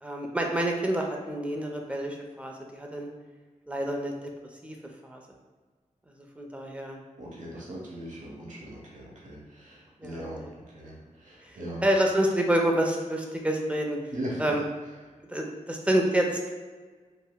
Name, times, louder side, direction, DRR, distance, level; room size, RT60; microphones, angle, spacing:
voice 1, 0.0-3.1 3.7-4.1 4.6-4.8 5.0-5.2 6.4-7.0 7.5-7.6 10.0-10.5 11.4-14.0 14.4-14.6 15.3-16.5, right 1 dB, 10° right, 1 dB, 0.5 m, -28 dB
voice 2, 7.2-10.5 10.7-11.0 11.2-11.8 14.1-14.4, right 1 dB, 75° right, -4 dB, 1.0 m, -39 dB
5.3 x 2.0 x 2.2 m, 1.4 s
wide cardioid pair, 90°, 13 cm